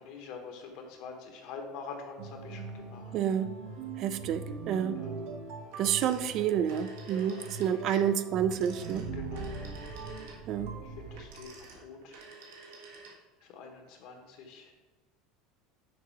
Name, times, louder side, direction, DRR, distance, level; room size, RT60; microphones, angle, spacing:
voice 1, 0.0-3.4 4.8-5.5 7.0-8.1 9.1-9.8 10.8-12.2 13.4-14.7, left 5 dB, 60° left, 3 dB, 1.2 m, -46 dB
sound 1, 2.2-11.4, right 4 dB, 60° right, 0.8 m, -41 dB
voice 2, 3.1-3.5 4.0-5.0 5.8-9.1 10.5-10.7, right 9 dB, 45° right, 12 dB, 0.3 m, -29 dB
Telephone, 5.7-7.8 8.4-13.5, right 4 dB, 85° right, 1.4 m, -51 dB
6.6 x 3.9 x 4.6 m, 1.2 s
cardioid pair, 150°, 0 cm